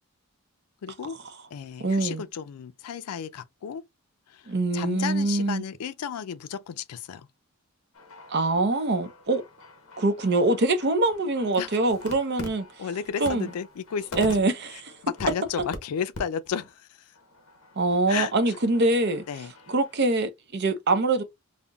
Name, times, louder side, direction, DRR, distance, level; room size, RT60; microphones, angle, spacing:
voice 1, 0.8-1.2 1.5-3.8 4.3-4.4 4.7-7.3 11.6-11.7 12.8-14.3 15.0-17.1 18.1-18.3 19.3-19.5, left 7 dB, 85° left, 0.4 m, -33 dB
voice 2, 1.8-2.2 4.5-5.6 8.3-9.4 10.0-12.7 13.2-13.5 14.2-14.9 17.8-19.2 19.7-21.2, right 2 dB, 50° right, 0.6 m, -24 dB
sound 1, 7.9-15.8 16.1-16.2 16.5-16.7 17.1-20.0, left 2 dB, 60° left, 0.8 m, -45 dB
5.3 x 2.1 x 2.2 m
head